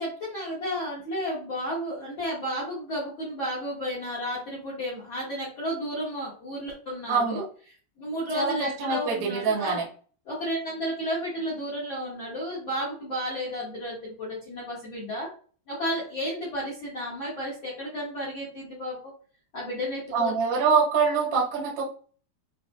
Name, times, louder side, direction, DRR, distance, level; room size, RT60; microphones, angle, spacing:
voice 1, 0.0-7.4 8.0-9.8 10.2-15.3 15.7-19.0 19.5-20.4, equal, 65° left, -5 dB, 1.2 m, -32 dB
voice 2, 7.1-7.5 8.3-9.9 20.1-21.8, right 5 dB, 85° right, -2 dB, 1.3 m, -25 dB
6.6 x 2.4 x 2.2 m, 0.41 s
omnidirectional pair, 4.7 m